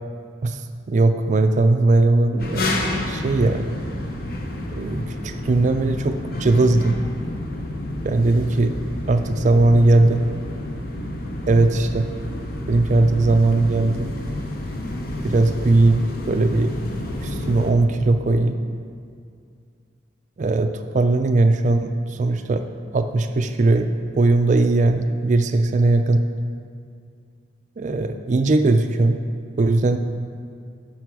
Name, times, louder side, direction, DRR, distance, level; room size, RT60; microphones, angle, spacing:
voice 1, 0.9-2.7 3.0-3.7 4.7-7.0 8.0-8.7 9.1-10.2 11.5-12.1 12.7-14.2 15.2-16.7 17.2-18.6 20.4-22.6 22.9-26.2 27.8-29.2 29.6-30.0, right 2 dB, 45° right, 7 dB, 0.4 m, -19 dB
sound 1, 2.4-17.7, left 1 dB, 55° left, 0.8 m, -30 dB
10.5 x 6.0 x 4.7 m, 2.3 s
head